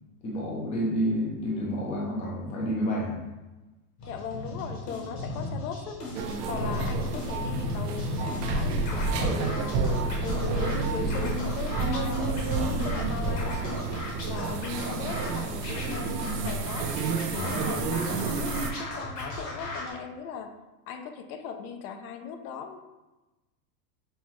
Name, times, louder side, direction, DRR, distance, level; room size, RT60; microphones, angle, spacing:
voice 1, 0.2-3.2 6.5-6.7 17.3-17.5, equal, 15° left, -3 dB, 0.4 m, -29 dB
voice 2, 4.0-6.0 6.5-9.9 10.2-13.9 14.3-16.9 17.3-20.5 20.9-22.8, left 6 dB, 65° left, 6 dB, 0.6 m, -38 dB
Scratching (performance technique), 4.0-19.9, left 1 dB, 35° left, 1.0 m, -37 dB
sound 1, 6.1-18.7, right 4 dB, 80° right, 0.7 m, -32 dB
sound 2, 8.5-13.6, right 1 dB, 50° right, 1.0 m, -30 dB
5.5 x 2.2 x 3.0 m, 1.1 s
supercardioid pair, 145°, 48 cm